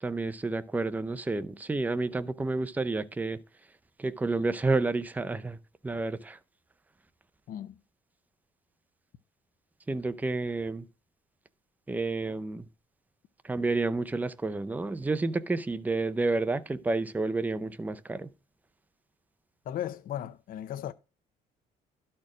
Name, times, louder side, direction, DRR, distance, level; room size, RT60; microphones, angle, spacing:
voice 1, 0.0-3.4 4.0-5.6 5.8-6.4 9.9-10.9 11.9-12.6 13.4-18.3, right 3 dB, 10° right, 0.6 m, -30 dB
voice 2, 7.5-7.8 19.7-20.9, left 11 dB, 55° left, 0.6 m, -36 dB
12.0 x 4.4 x 5.0 m
cardioid pair, 110°, 17 cm